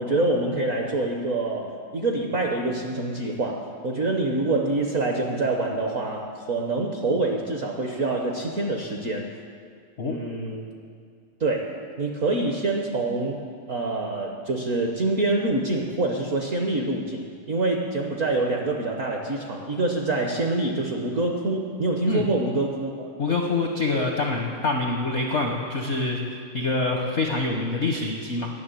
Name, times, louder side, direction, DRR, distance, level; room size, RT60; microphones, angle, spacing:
voice 1, 0.0-9.3 10.0-10.7 11.4-11.7 12.0-13.4 13.7-23.1, right 2 dB, 55° right, 1 dB, 0.9 m, -26 dB
voice 2, 23.2-26.2 26.5-28.5, left 3 dB, 65° left, 1 dB, 0.7 m, -25 dB
10.5 x 6.5 x 9.0 m, 2.1 s
omnidirectional pair, 2.4 m